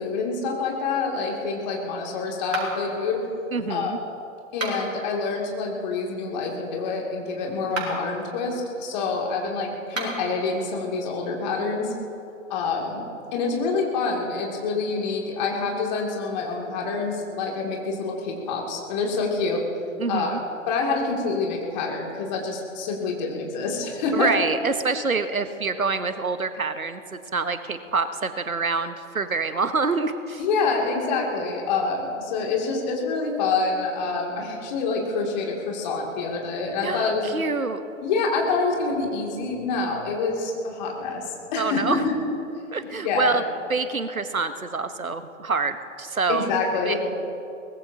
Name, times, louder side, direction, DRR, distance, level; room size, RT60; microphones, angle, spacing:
voice 1, 0.0-3.2 3.7-3.9 4.5-11.9 12.5-13.0 13.3-19.6 20.1-20.4 20.7-24.3 30.4-37.3 38.0-41.2 41.5-42.1 42.8-43.4 46.3-47.0, left 4 dB, 30° left, -1 dB, 2.6 m, -27 dB
sound 1, 2.5-3.0 4.5-5.0 7.6-8.1 9.8-10.3, right 2 dB, 65° right, 4.5 m, -32 dB
voice 2, 3.5-4.0 20.0-20.4 24.1-30.4 36.8-37.8 41.6-42.0 42.7-43.4 43.7-46.5 46.8-47.0, right 4 dB, 90° right, 10 dB, 1.1 m, -26 dB
23.0 x 19.5 x 2.9 m, 2.7 s
figure-of-eight pair, 130°, 41 cm